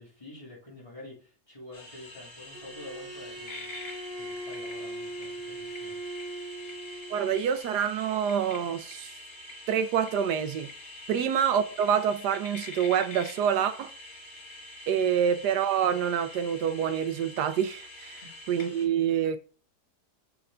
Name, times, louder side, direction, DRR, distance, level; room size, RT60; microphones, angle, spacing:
voice 1, 0.0-6.0 11.1-11.2 15.1-15.2 18.2-18.4, left 2 dB, 20° left, 3.1 m, -48 dB
sound 1, 1.7-18.8, left 2 dB, 55° left, 2.5 m, -45 dB
Bowed string instrument, 2.5-7.4, right 1 dB, 10° right, 1.9 m, -40 dB
voice 2, 7.1-9.1 9.7-10.7 11.1-13.9 14.9-18.2 18.5-19.4, right 8 dB, 75° right, 1.2 m, -27 dB
6.9 x 4.5 x 3.7 m
omnidirectional pair, 1.8 m